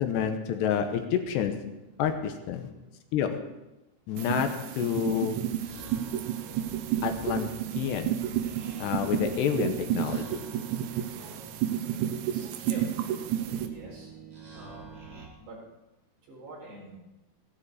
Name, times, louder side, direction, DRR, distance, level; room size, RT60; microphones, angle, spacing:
voice 1, 0.0-1.7 2.0-2.7 3.1-3.5 4.1-5.4 7.0-8.2 8.8-10.5, left 9 dB, 80° left, 7 dB, 3.1 m, -29 dB
sound 1, 4.2-13.7, right 10 dB, 90° right, 3.3 m, -31 dB
sound 2, 5.6-15.3, right 3 dB, 30° right, 2.1 m, -47 dB
voice 2, 12.3-13.0 13.6-14.1 14.5-14.9 15.4-15.6 16.3-16.9, right 3 dB, 70° right, -3 dB, 6.7 m, -44 dB
16.0 x 12.5 x 4.9 m, 0.98 s
omnidirectional pair, 5.1 m